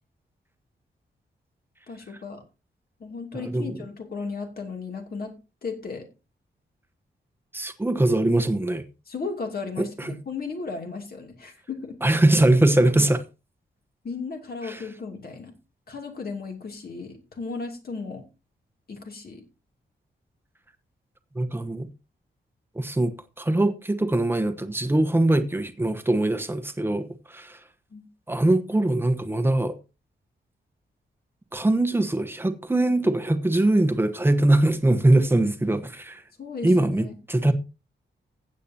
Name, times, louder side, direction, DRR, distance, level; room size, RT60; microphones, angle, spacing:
voice 1, 1.9-2.4 3.0-5.4 5.6-6.1 9.1-12.0 14.0-15.5 15.9-18.2 18.9-19.4 27.9-28.0 36.4-37.2, left 4 dB, 50° left, 2.8 m, -35 dB
voice 2, 3.3-3.8 7.5-8.8 9.8-10.1 12.0-13.2 14.6-14.8 21.3-21.9 22.7-27.6 28.3-29.7 31.5-36.2 36.6-37.5, right 1 dB, 10° right, 1.1 m, -22 dB
15.5 x 8.4 x 2.8 m
wide cardioid pair, 135°, 19 cm